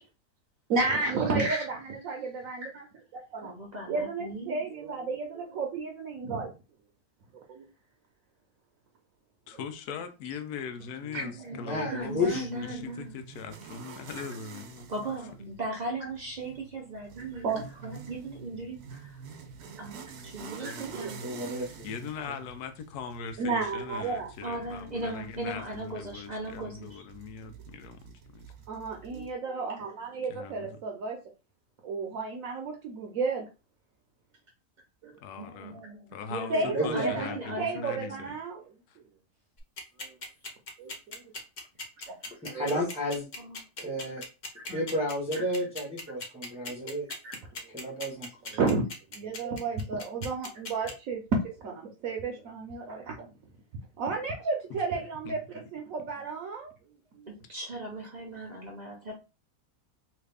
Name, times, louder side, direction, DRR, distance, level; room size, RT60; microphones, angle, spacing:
voice 1, 0.7-2.8 3.1-3.5 3.9-6.5 7.5-7.6 11.1-11.2 17.4-17.6 20.6-20.7 21.0-21.1 23.4-24.3 28.7-31.2 31.8-33.5 35.0-35.1 36.5-38.6 40.0-40.1 40.8-41.2 42.5-42.8 44.7-44.8 45.3-45.4 46.6-46.9 47.2-47.4 48.5-48.8 49.1-53.3 54.0-56.7 57.2-57.3, right 3 dB, 70° right, 1.0 m, -32 dB
voice 2, 3.4-4.6 11.2-13.1 14.9-17.6 17.8-19.2 19.8-21.2 24.4-27.0 35.4-38.2 42.1-42.2 43.4-43.6 57.3-59.1, right 2 dB, 45° right, 0.6 m, -38 dB
voice 3, 9.5-14.9 21.8-28.5 30.3-30.8 35.2-35.8 36.1-38.3 38.9-39.0 54.7-54.8 55.2-55.4, left 6 dB, 85° left, 1.1 m, -40 dB
voice 4, 11.2-12.5 20.6-21.7 36.6-37.2 42.4-43.3 43.8-44.2 44.6-47.1 47.7-48.3, left 1 dB, 5° right, 0.7 m, -32 dB
sound 1, 12.0-29.3, right 5 dB, 90° right, 1.2 m, -48 dB
sound 2, 39.6-50.9, left 3 dB, 45° left, 0.6 m, -39 dB
3.1 x 2.4 x 3.4 m
omnidirectional pair, 1.6 m